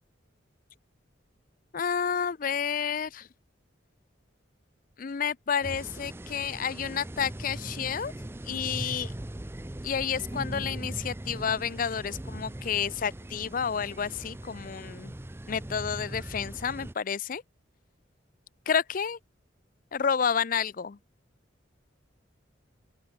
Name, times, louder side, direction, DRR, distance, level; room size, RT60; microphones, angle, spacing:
voice 1, 1.7-3.3 5.0-8.1 8.5-9.1 9.8-15.1 15.5-17.4 18.7-19.2 19.9-21.0, left 7 dB, 45° left, 0.5 m, -30 dB
sound 1, 5.6-16.9, right 1 dB, 10° right, 0.6 m, -40 dB
open air
head